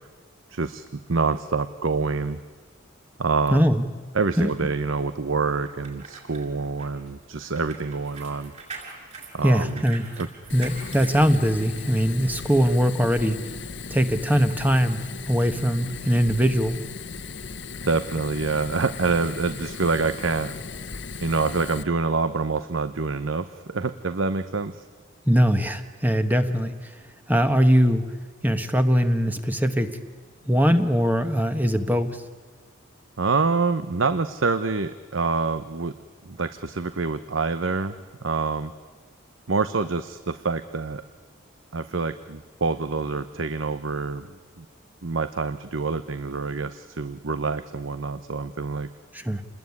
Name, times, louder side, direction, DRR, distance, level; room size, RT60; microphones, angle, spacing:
voice 1, 0.5-2.4 3.2-3.6 4.1-8.5 9.3-9.8 10.2-10.3 17.8-20.5 21.2-24.8 33.2-35.9 36.2-37.9 38.2-38.7 39.5-41.0 41.7-44.6 45.0-48.9, right 4 dB, 70° right, 12 dB, 0.8 m, -26 dB
voice 2, 3.5-3.9 4.4-4.5 9.4-10.0 10.5-13.4 13.9-15.0 15.3-16.8 25.3-26.7 27.3-28.0 28.4-29.9 30.5-32.2 49.1-49.4, equal, 10° right, 8 dB, 1.2 m, -21 dB
sound 1, 5.7-11.9 12.4-12.6, right 4 dB, 35° right, 7.4 m, -43 dB
Fire, 10.5-21.8, left 4 dB, 60° left, 1.1 m, -37 dB
28.5 x 20.5 x 9.6 m, 1.5 s
head